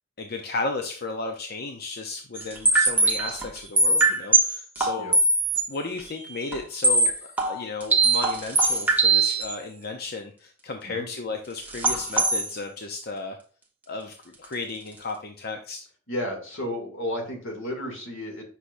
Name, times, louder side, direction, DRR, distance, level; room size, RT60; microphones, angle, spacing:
voice 1, 0.2-5.1 5.7-7.1 7.5-13.4 13.9-15.8, left 3 dB, 55° left, 4 dB, 0.7 m, -34 dB
sound 1, 2.4-5.7 6.0-6.1 6.5-6.6 6.8-9.5 11.7-12.5, right 3 dB, 10° right, 1.1 m, -21 dB
voice 2, 16.1-18.4, left 1 dB, 80° left, 1 dB, 2.5 m, -32 dB
8.2 x 5.8 x 2.6 m, 0.42 s
head